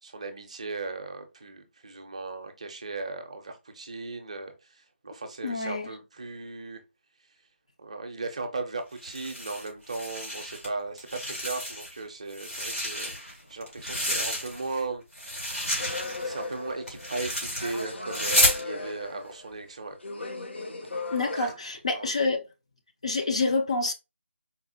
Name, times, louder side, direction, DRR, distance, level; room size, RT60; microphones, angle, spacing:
voice 1, 0.0-6.8 7.8-15.0 15.9-20.0 21.0-21.1 21.3-21.5 21.9-22.1, right 3 dB, 30° right, 0.5 m, -37 dB
voice 2, 5.4-5.9 21.1-22.5 23.0-23.9, left 3 dB, 30° left, 0.3 m, -27 dB
sound 1, 9.0-10.7 11.0-12.0 12.3-14.8 15.1-18.6, equal, 90° left, 1.8 m, -30 dB
sound 2, 15.8-17.3 17.6-19.6 20.0-21.5, left 3 dB, 60° left, 0.7 m, -37 dB
4.1 x 2.0 x 2.7 m
figure-of-eight pair, 160°, 7 cm